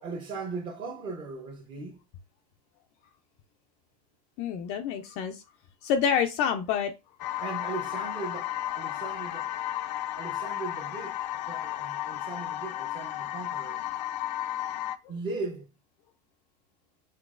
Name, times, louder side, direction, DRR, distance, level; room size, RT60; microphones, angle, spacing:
voice 1, 0.0-2.0 7.4-9.5 10.2-13.8 15.1-15.7, right 4 dB, 20° right, 0.7 m, -38 dB
voice 2, 4.4-5.4 5.8-6.9, left 8 dB, 30° left, 0.4 m, -27 dB
sound 1, 7.2-15.0, left 13 dB, 90° left, 0.5 m, -33 dB
5.9 x 2.9 x 2.4 m
supercardioid pair, 165°, 21 cm